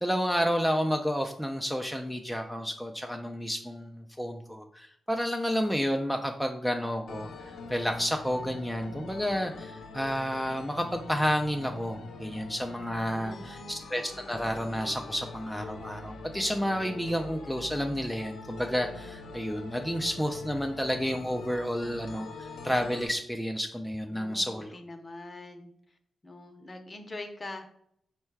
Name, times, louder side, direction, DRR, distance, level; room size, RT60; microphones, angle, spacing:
voice 1, 0.0-7.3 7.7-24.8, equal, ahead, 3 dB, 0.4 m, -30 dB
sound 1, 7.1-23.1, left 3 dB, 85° left, 0.6 m, -44 dB
voice 2, 13.0-13.8 24.1-25.7 26.2-27.7, left 2 dB, 35° left, 6 dB, 0.7 m, -43 dB
4.4 x 2.2 x 4.5 m, 0.68 s
cardioid pair, 65°, 0 cm